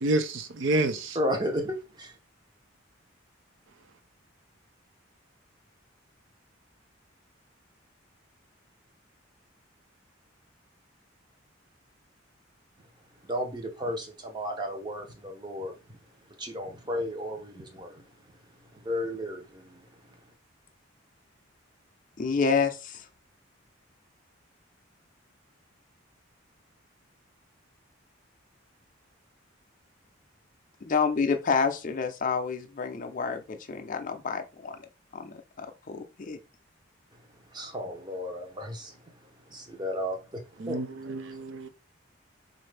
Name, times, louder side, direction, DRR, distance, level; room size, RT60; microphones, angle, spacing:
voice 1, 0.0-1.2 40.6-41.7, right 2 dB, 65° right, 0.5 m, -28 dB
voice 2, 1.1-2.1 13.2-15.8 16.4-18.0 18.7-19.8 37.5-39.0 39.5-40.8, equal, 20° right, 0.7 m, -33 dB
voice 3, 22.2-23.1 30.8-34.8 35.1-36.4, left 5 dB, 40° left, 0.5 m, -29 dB
4.1 x 2.6 x 3.2 m
head